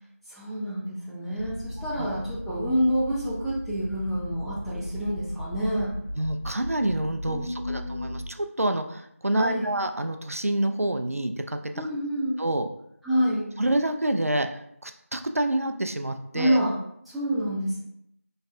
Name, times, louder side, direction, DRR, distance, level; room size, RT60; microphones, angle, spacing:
voice 1, 0.3-6.0 7.3-8.1 9.3-9.7 11.7-12.4 13.0-13.5 16.3-16.7 17.1-17.8, equal, ahead, -12 dB, 0.3 m, -28 dB
sound 1, 1.4-8.2, equal, 40° left, 1.2 m, -37 dB
voice 2, 6.2-11.9 12.4-12.7 13.6-16.6, right 1 dB, 70° right, 6 dB, 0.4 m, -27 dB
3.2 x 2.2 x 4.1 m, 0.73 s
figure-of-eight pair, 175°, 8 cm